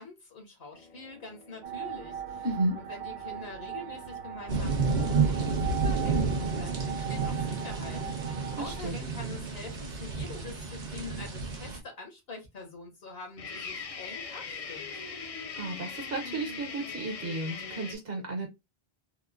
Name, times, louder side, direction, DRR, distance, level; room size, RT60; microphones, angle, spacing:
voice 1, 0.0-2.4 2.7-14.9, left 3 dB, 75° left, 1.4 m, -45 dB
sound 1, 0.7-6.4 13.4-17.9, left 5 dB, 50° left, 0.5 m, -43 dB
sound 2, 1.6-8.8, right 8 dB, 90° right, 0.8 m, -40 dB
voice 2, 2.4-2.8 8.5-9.0 15.6-18.5, right 2 dB, 70° right, 1.2 m, -33 dB
sound 3, 4.5-11.8, right 4 dB, 50° right, 0.8 m, -30 dB
3.7 x 2.1 x 2.4 m
omnidirectional pair, 1.0 m